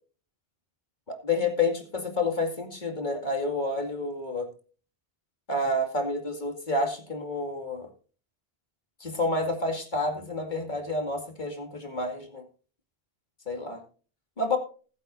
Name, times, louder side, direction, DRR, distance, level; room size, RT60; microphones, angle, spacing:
voice 1, 1.1-4.5 5.5-7.9 9.0-12.4 13.5-13.8 14.4-14.6, left 2 dB, 45° left, 4 dB, 2.5 m, -29 dB
20.5 x 8.2 x 2.6 m, 0.39 s
omnidirectional pair, 1.1 m